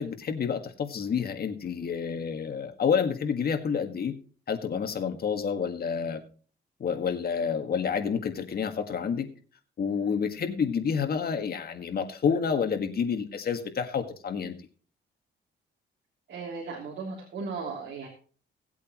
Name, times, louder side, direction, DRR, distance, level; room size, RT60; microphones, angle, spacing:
voice 1, 0.0-4.2 4.5-6.2 6.8-9.3 9.8-14.5, left 6 dB, 50° left, 6 dB, 1.7 m, -29 dB
voice 2, 16.3-18.1, right 4 dB, 65° right, -3 dB, 3.1 m, -36 dB
18.0 x 8.3 x 3.0 m, 0.41 s
cardioid pair, 90°, 20 cm